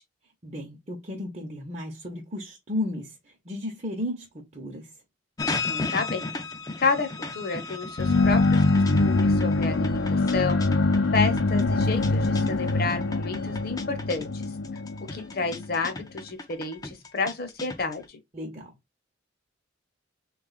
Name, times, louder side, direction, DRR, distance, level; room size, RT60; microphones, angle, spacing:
voice 1, 0.4-3.1 3.4-4.3 4.5-4.9 18.3-18.7, left 1 dB, 35° right, 0.7 m, -33 dB
sound 1, 5.4-18.1, left 3 dB, 20° left, 0.4 m, -35 dB
voice 2, 5.7-6.3 6.8-10.7 11.1-14.5 15.1-18.2, left 4 dB, 50° left, 0.8 m, -30 dB
sound 2, 8.0-15.7, left 3 dB, 85° left, 0.5 m, -23 dB
3.5 x 2.3 x 3.9 m
head